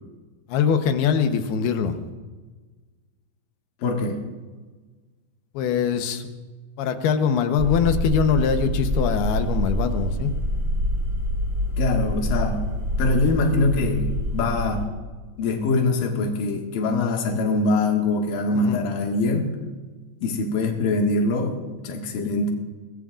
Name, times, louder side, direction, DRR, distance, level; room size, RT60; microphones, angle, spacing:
voice 1, 0.5-1.9 5.5-6.3 6.8-10.3 18.5-18.8, left 7 dB, 80° left, 7 dB, 3.0 m, -22 dB
voice 2, 3.8-4.2 11.8-12.6 13.0-14.9 15.4-19.5 20.2-22.5, left 2 dB, 65° left, 1 dB, 3.3 m, -23 dB
sound 1, 7.6-14.8, equal, 75° right, 0.8 m, -26 dB
23.5 x 19.5 x 2.5 m, 1.3 s
omnidirectional pair, 4.5 m